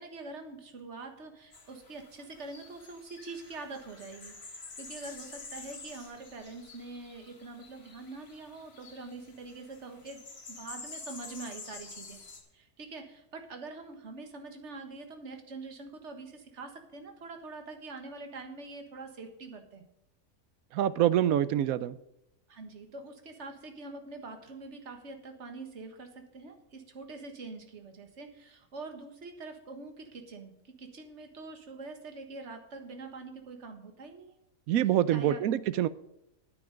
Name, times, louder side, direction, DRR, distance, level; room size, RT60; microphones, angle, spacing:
voice 1, 0.0-10.2 10.5-12.2 12.5-19.8 22.5-34.4 35.1-35.4, right 3 dB, 50° right, 5 dB, 1.7 m, -44 dB
sound 1, 1.5-12.4, left 3 dB, 65° left, 2.3 m, -48 dB
voice 2, 20.7-22.0 34.7-35.9, right 11 dB, 75° right, 16 dB, 1.0 m, -26 dB
10.0 x 9.4 x 5.2 m, 0.84 s
omnidirectional pair, 1.6 m